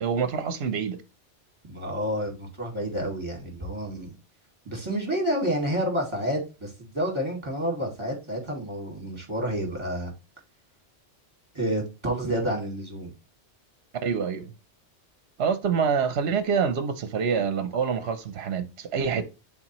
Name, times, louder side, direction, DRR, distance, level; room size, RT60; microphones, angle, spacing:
voice 1, 0.0-1.0 14.0-14.5 15.4-19.2, right 6 dB, 65° right, 0.9 m, -26 dB
voice 2, 1.7-4.1 4.7-10.1 11.5-13.1, equal, 25° right, 2.2 m, -29 dB
9.9 x 3.9 x 3.0 m
omnidirectional pair, 1.2 m